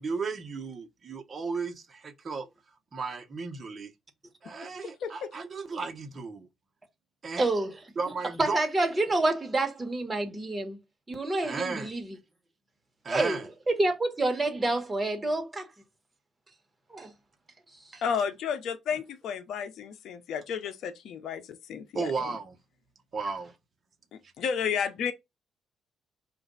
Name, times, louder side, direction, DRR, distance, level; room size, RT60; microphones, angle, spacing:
voice 1, 0.0-2.5 2.9-3.9 4.4-6.5 7.2-7.5 8.0-8.6 11.4-11.9 13.0-13.4 21.9-22.6 23.1-23.5, right 4 dB, 40° right, 1.0 m, -34 dB
voice 2, 4.8-5.3 18.0-22.4 24.1-25.1, left 7 dB, 75° left, 0.7 m, -32 dB
voice 3, 7.4-7.7 8.4-10.8 11.1-12.2 13.1-15.7 16.9-17.1 17.9-18.0, right 2 dB, 20° right, 1.4 m, -28 dB
5.0 x 2.6 x 3.9 m
cardioid pair, 90°, 0 cm